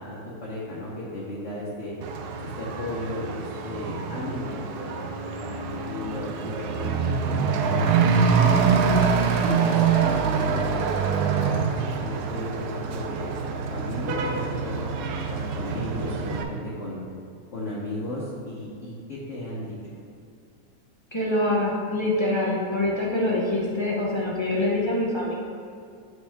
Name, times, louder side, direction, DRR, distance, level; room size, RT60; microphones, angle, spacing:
voice 1, 0.0-1.9 2.4-5.1 5.4-7.9 8.2-8.6 9.4-11.6 12.0-13.4 13.7-17.0 17.5-19.7, left 1 dB, 55° left, -7 dB, 1.2 m, -35 dB
Truck / Accelerating revving vroom, 2.0-16.4, right 6 dB, 80° right, 1.1 m, -25 dB
voice 2, 21.1-25.3, left 1 dB, 30° left, -5 dB, 0.5 m, -25 dB
7.8 x 4.2 x 3.5 m, 2.4 s
omnidirectional pair, 1.7 m